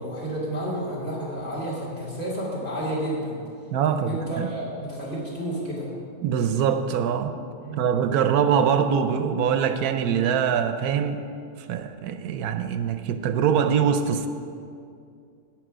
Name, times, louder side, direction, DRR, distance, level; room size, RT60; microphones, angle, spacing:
voice 1, 0.0-3.4 3.8-5.9 7.6-7.9, right 1 dB, 40° left, -6 dB, 2.9 m, -31 dB
voice 2, 3.7-4.5 6.2-7.4 7.8-11.2 11.7-14.3, right 7 dB, 80° right, 8 dB, 1.1 m, -23 dB
10.5 x 8.7 x 5.0 m, 2.4 s
omnidirectional pair, 1.6 m